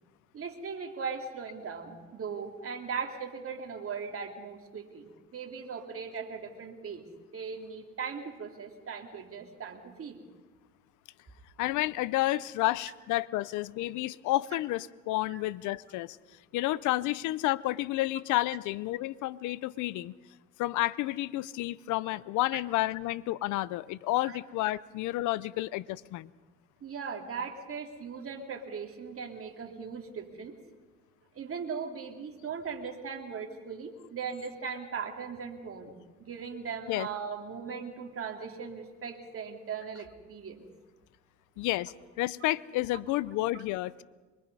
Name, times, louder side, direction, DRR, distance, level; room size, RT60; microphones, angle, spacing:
voice 1, 0.3-7.0 7.3-10.2 15.3-15.4 22.5-22.6 24.2-24.4 26.8-30.6 31.3-35.9 36.2-40.7 43.5-43.6, right 6 dB, 50° right, 3 dB, 3.0 m, -39 dB
voice 2, 11.6-16.2 16.5-20.1 20.6-26.3 36.9-37.1 41.6-44.0, left 17 dB, 85° left, 20 dB, 0.6 m, -30 dB
24.5 x 22.0 x 5.4 m, 1.3 s
cardioid pair, 85°, 29 cm